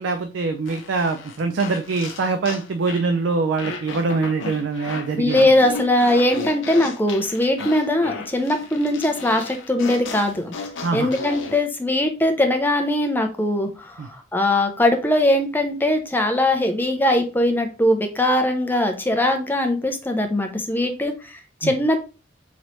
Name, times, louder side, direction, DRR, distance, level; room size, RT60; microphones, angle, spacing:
voice 1, 0.0-5.5 10.8-11.1 14.0-14.1 21.6-21.7, right 4 dB, 70° right, 7 dB, 0.4 m, -24 dB
sound 1, 0.7-3.1 3.6-11.6, left 4 dB, 80° left, 0.6 m, -34 dB
voice 2, 5.2-10.6 10.9-22.0, left 1 dB, 10° left, 5 dB, 0.6 m, -21 dB
4.0 x 3.1 x 3.0 m, 0.33 s
head